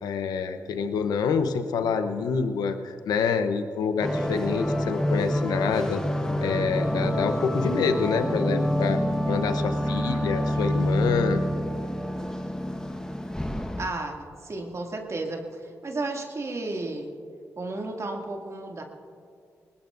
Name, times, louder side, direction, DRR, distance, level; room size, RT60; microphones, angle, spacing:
voice 1, 0.0-6.0 6.4-9.0 9.3-11.4, left 5 dB, 85° left, 8 dB, 0.9 m, -27 dB
sound 1, 4.0-13.9, equal, 10° left, 1.4 m, -27 dB
voice 2, 13.8-17.1 17.6-18.8, right 2 dB, 45° right, 1 dB, 2.4 m, -33 dB
20.5 x 20.0 x 2.6 m, 2.4 s
supercardioid pair, 45°, 7 cm